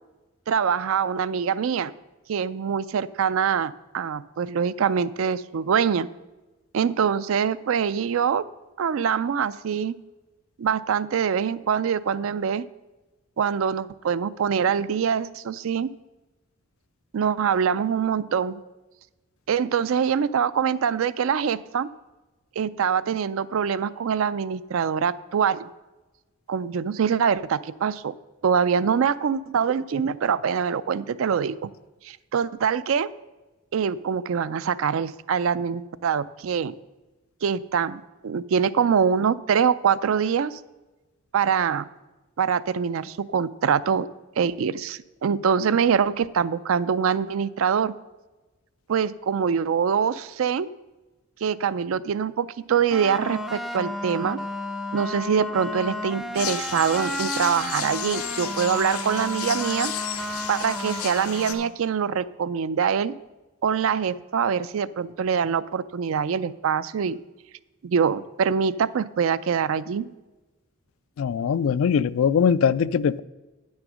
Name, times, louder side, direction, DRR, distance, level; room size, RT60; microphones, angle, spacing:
voice 1, 0.5-1.9 2.3-6.1 6.7-8.4 8.8-10.0 10.6-12.7 13.4-15.9 17.1-18.6 19.5-21.9 22.6-25.7 26.5-28.1 28.4-31.7 32.0-33.1 33.7-36.7 37.4-40.6 41.3-41.9 42.4-44.1 44.4-47.9 48.9-50.7 51.4-54.4 54.9-59.9 60.5-63.2 63.6-67.2 67.8-70.1, right 7 dB, 70° right, 0.4 m, -24 dB
sound 1, 52.9-61.7, left 1 dB, ahead, 0.5 m, -33 dB
sound 2, 56.3-61.5, left 9 dB, 90° left, 0.9 m, -33 dB
voice 2, 71.2-73.2, left 7 dB, 70° left, 0.3 m, -21 dB
9.4 x 6.4 x 6.2 m
head